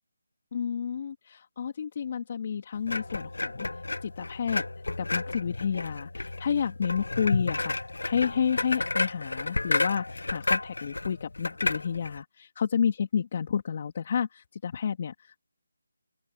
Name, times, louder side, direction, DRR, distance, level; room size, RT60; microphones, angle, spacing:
voice 1, 0.5-3.7 4.0-4.6 5.0-7.8 8.0-15.4, left 7 dB, 35° left, 2.9 m, -30 dB
sound 1, 2.9-12.2, left 2 dB, 80° left, 1.3 m, -31 dB
open air
figure-of-eight pair, 165°, 0 cm